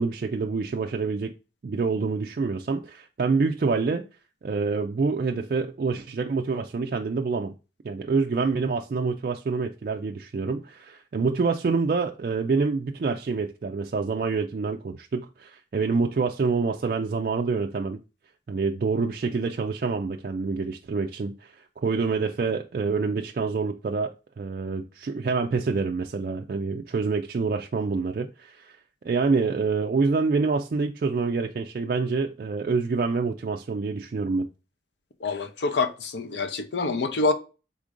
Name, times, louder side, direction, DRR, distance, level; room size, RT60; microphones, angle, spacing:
voice 1, 0.0-1.3 1.6-4.0 4.4-7.5 7.8-18.0 18.5-28.8 29.0-34.5, right 4 dB, 55° right, 0.3 m, -27 dB
voice 2, 35.2-37.3, left 3 dB, 85° left, 0.6 m, -26 dB
5.0 x 3.6 x 2.5 m
head